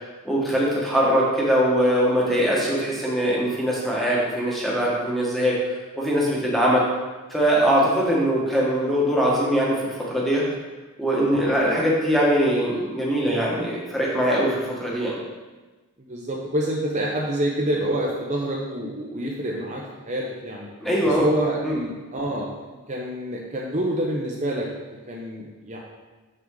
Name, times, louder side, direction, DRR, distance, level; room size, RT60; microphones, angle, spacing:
voice 1, 0.2-5.6 6.0-6.8 7.3-10.4 11.0-15.2 20.8-21.3 21.6-21.8, equal, ahead, -5 dB, 1.4 m, -22 dB
voice 2, 16.1-20.7 21.0-22.5 22.9-24.7 25.1-25.8, right 1 dB, 30° right, -3 dB, 0.7 m, -27 dB
6.9 x 5.9 x 3.8 m, 1.2 s
head